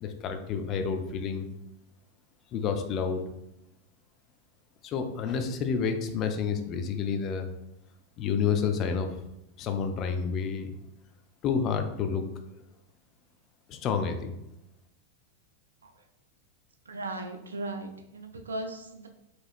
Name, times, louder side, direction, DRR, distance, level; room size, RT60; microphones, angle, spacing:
voice 1, 0.0-1.5 2.5-3.2 4.8-7.5 8.2-9.1 9.6-10.7 11.4-12.2 13.7-14.4, left 6 dB, 35° left, 6 dB, 0.5 m, -29 dB
voice 2, 16.9-19.1, right 2 dB, 70° right, 5 dB, 0.5 m, -37 dB
4.7 x 3.0 x 2.4 m, 0.86 s
figure-of-eight pair, 90°, 0 cm